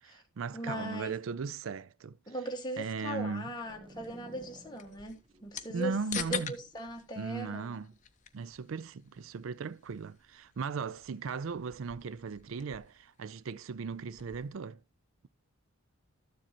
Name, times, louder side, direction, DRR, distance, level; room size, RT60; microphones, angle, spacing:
voice 1, 0.0-2.2 2.8-3.5 5.7-6.5 7.2-7.9 8.3-14.8, right 5 dB, 75° right, 0.4 m, -37 dB
voice 2, 0.5-1.2 2.3-7.7, right 1 dB, 20° left, 1.7 m, -39 dB
sound 1, 3.5-8.2, equal, 25° right, 1.0 m, -56 dB
sound 2, 3.9-14.6, left 8 dB, 35° left, 0.8 m, -47 dB
13.0 x 7.5 x 2.9 m
head